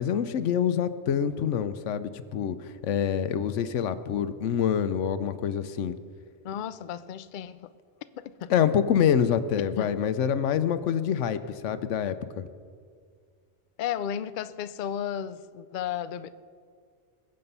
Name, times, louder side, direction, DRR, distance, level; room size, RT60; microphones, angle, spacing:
voice 1, 0.0-2.6 2.8-5.9 8.5-12.4, left 8 dB, 85° left, 1.0 m, -26 dB
voice 2, 6.4-7.7 8.2-8.5 9.8-9.9 13.8-16.3, left 9 dB, 60° left, 0.5 m, -34 dB
21.0 x 7.7 x 5.4 m
omnidirectional pair, 1.2 m